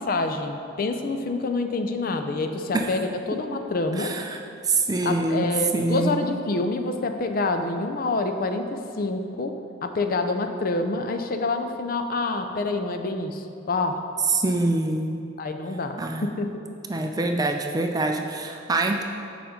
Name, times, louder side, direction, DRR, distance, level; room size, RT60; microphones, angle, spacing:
voice 1, 0.1-4.1 5.0-9.5 9.8-14.0 15.4-16.5, left 3 dB, 45° left, 6 dB, 0.4 m, -27 dB
voice 2, 4.0-4.4 4.6-5.5 5.7-6.3 14.3-15.3 16.0-16.2 16.9-19.0, right 2 dB, 20° right, 3 dB, 0.3 m, -25 dB
7.1 x 5.0 x 5.1 m, 2.6 s
head